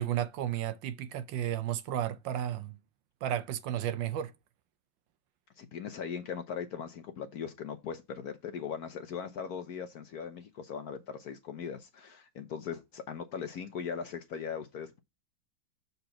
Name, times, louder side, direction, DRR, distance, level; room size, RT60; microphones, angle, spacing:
voice 1, 0.0-2.8 3.2-4.3, right 11 dB, 75° right, 1.2 m, -33 dB
voice 2, 5.6-15.0, left 7 dB, 65° left, 1.0 m, -39 dB
6.9 x 4.1 x 5.7 m
omnidirectional pair, 2.2 m